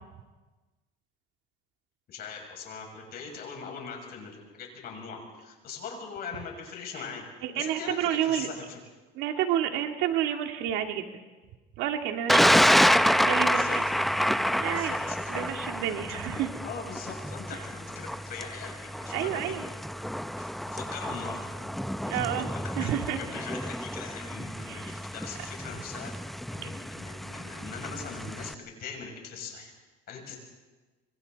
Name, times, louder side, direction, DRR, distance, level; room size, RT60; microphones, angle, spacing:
voice 1, 2.1-7.2 7.5-8.8 13.5-14.0 14.5-15.5 16.1-19.6 20.4-21.7 22.1-26.1 26.5-29.7 30.1-30.4, left 5 dB, 55° left, 1 dB, 6.8 m, -41 dB
voice 2, 7.4-8.5 9.1-11.1 11.8-12.6 13.2-13.8 14.6-14.9 15.3-16.5 19.1-19.6 22.0-22.5 22.8-23.2 24.7-25.0 26.6-26.7, right 11 dB, 75° right, 4 dB, 2.2 m, -30 dB
Thunder, 12.3-28.5, equal, ahead, 0.6 m, -28 dB
26.0 x 25.0 x 4.1 m, 1.2 s
cardioid pair, 115°, 20 cm